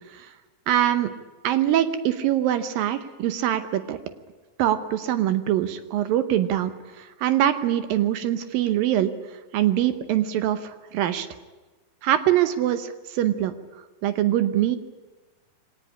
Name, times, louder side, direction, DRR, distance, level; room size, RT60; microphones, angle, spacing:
voice 1, 0.7-1.1 1.4-4.0 4.6-6.7 7.0-9.1 9.5-11.3 12.0-13.5 14.0-14.8, right 12 dB, 75° right, 11 dB, 2.5 m, -23 dB
23.0 x 18.0 x 9.9 m, 1.2 s
omnidirectional pair, 4.3 m